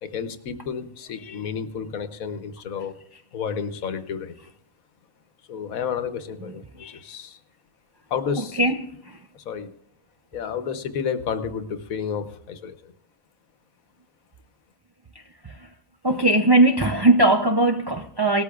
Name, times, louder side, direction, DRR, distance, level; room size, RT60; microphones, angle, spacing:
voice 1, 0.0-3.0 3.3-4.4 5.5-7.4 8.1-8.6 9.3-9.7 10.3-12.9, left 7 dB, 90° left, 1.4 m, -31 dB
voice 2, 8.6-9.2 15.4-15.5 16.0-18.4, right 2 dB, 35° right, 0.4 m, -19 dB
19.0 x 13.0 x 2.4 m
omnidirectional pair, 1.4 m